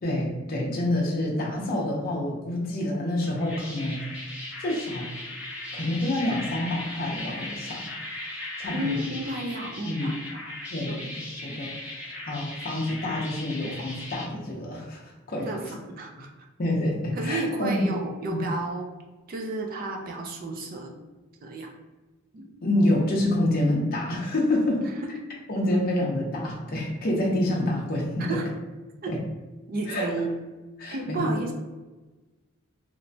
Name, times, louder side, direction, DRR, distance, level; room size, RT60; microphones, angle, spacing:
voice 1, 0.0-5.1 5.7-7.8 8.6-9.1 9.8-10.1 10.7-15.6 16.6-17.9 18.3-18.4 22.6-24.8 25.5-28.4 29.1-29.2 29.9-30.1 30.8-31.5, left 1 dB, 45° left, -2 dB, 0.5 m, -27 dB
sound 1, 3.2-14.3, left 2 dB, 5° right, 0.7 m, -38 dB
voice 2, 8.7-10.5 10.9-11.1 15.4-16.3 17.2-18.9 19.3-20.9 21.4-21.7 22.3-22.5 25.7-25.8 28.2-28.4 29.0-29.1 29.7-30.3 30.9-31.5, right 2 dB, 40° right, 2 dB, 0.4 m, -32 dB
2.9 x 2.2 x 2.6 m, 1.2 s
head